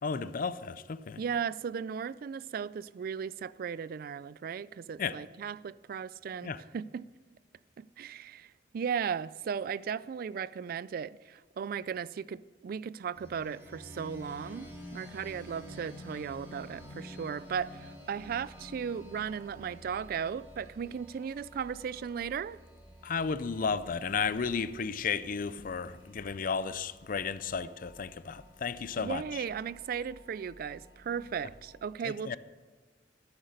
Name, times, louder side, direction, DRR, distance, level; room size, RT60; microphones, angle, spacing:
voice 1, 0.0-1.2 5.0-5.1 6.4-6.6 23.0-29.2 32.0-32.4, left 5 dB, 50° left, 0.5 m, -33 dB
voice 2, 1.2-7.1 7.8-22.6 29.0-32.4, right 7 dB, 55° right, 0.3 m, -36 dB
sound 1, 13.1-31.8, equal, 15° right, 2.5 m, -51 dB
13.0 x 8.2 x 6.5 m
head